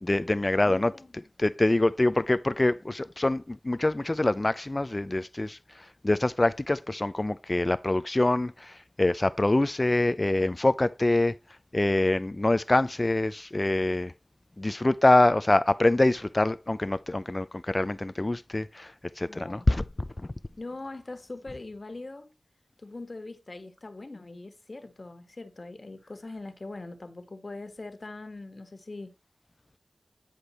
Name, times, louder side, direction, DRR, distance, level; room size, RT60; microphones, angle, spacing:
voice 1, 0.0-11.3 11.7-14.1 14.6-19.8, left 2 dB, 35° left, 0.4 m, -25 dB
voice 2, 0.6-1.1 19.3-19.7 20.6-22.3 22.8-29.1, left 2 dB, 55° left, 1.6 m, -41 dB
9.9 x 5.1 x 4.3 m
wide cardioid pair, 50°, 0 cm